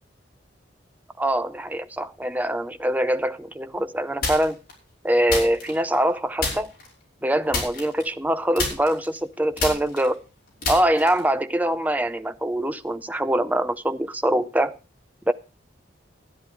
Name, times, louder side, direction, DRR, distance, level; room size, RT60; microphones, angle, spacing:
voice 1, 1.2-4.6 5.0-6.7 7.2-10.2 10.7-14.8 15.3-15.4, right 1 dB, 10° right, 0.5 m, -23 dB
sound 1, 4.2-4.7 5.3-6.1 6.4-6.9 7.5-8.3 8.6-11.3, left 3 dB, 50° left, 5.8 m, -29 dB
13.0 x 9.7 x 4.9 m
head